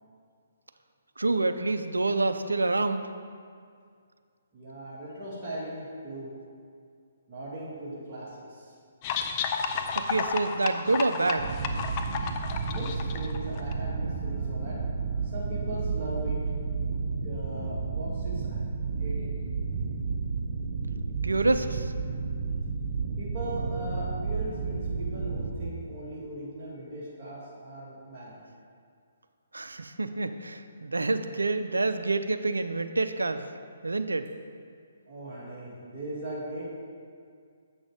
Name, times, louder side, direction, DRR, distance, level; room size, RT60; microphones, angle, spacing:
voice 1, 1.2-3.1 9.9-11.5 21.2-21.9 29.5-33.5 33.8-34.3, right 3 dB, 80° right, 10 dB, 0.5 m, -27 dB
voice 2, 4.5-6.3 7.3-8.7 12.6-16.4 17.2-18.6 19.0-19.3 23.2-28.4 35.1-36.6, right 1 dB, 25° right, -9 dB, 2.1 m, -39 dB
sound 1, 9.0-13.7, left 6 dB, 30° left, 0.5 m, -32 dB
sound 2, 11.4-25.6, right 4 dB, 45° right, 1.0 m, -32 dB
8.0 x 6.2 x 4.9 m, 2.2 s
figure-of-eight pair, 135°, 0 cm